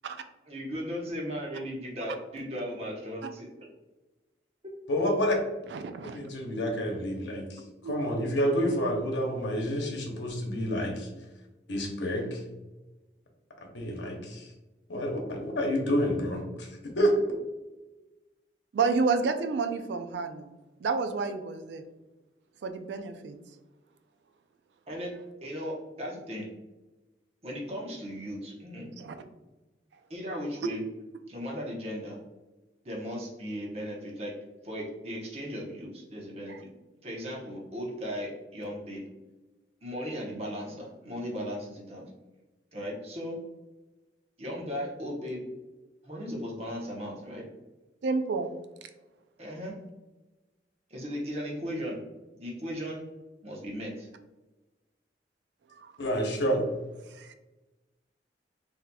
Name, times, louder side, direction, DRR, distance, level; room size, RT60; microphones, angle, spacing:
voice 1, 0.5-3.5 24.9-25.1 25.4-26.5 27.4-28.9 30.1-30.8 31.3-32.2 32.8-34.3 34.6-36.7 37.0-39.0 39.8-42.0 42.7-43.4 44.4-45.4 46.0-47.5 49.4-49.7 50.9-52.0 52.4-53.0 53.4-54.1, equal, 35° right, -2 dB, 0.8 m, -36 dB
voice 2, 4.9-5.4 6.0-11.1 11.7-12.4 13.7-14.5 14.9-17.1 56.0-56.6, equal, 85° left, 1 dB, 0.9 m, -29 dB
voice 3, 5.7-6.3 7.8-8.0 18.7-20.5 20.8-21.8 22.6-23.4 29.0-29.1 36.5-36.6 48.0-48.5 55.8-55.9 57.1-57.3, right 4 dB, 80° right, 8 dB, 0.4 m, -30 dB
4.0 x 2.7 x 2.2 m, 1.1 s
head